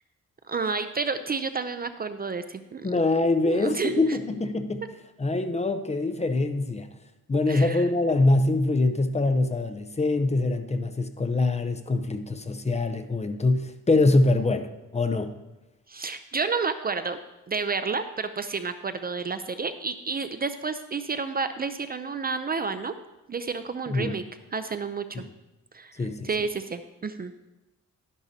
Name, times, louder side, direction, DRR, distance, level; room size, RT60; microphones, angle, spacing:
voice 1, 0.5-2.9 3.4-4.2 7.5-7.9 15.9-17.2 17.5-22.9 23.3-24.2 24.5-25.2 25.7-27.3, right 4 dB, 30° right, 10 dB, 0.5 m, -30 dB
voice 2, 2.8-4.8 5.2-6.9 7.3-15.3 23.9-24.2 26.0-26.3, left 2 dB, 20° left, 8 dB, 0.6 m, -24 dB
12.0 x 11.0 x 2.8 m, 0.98 s
cardioid pair, 100°, 29 cm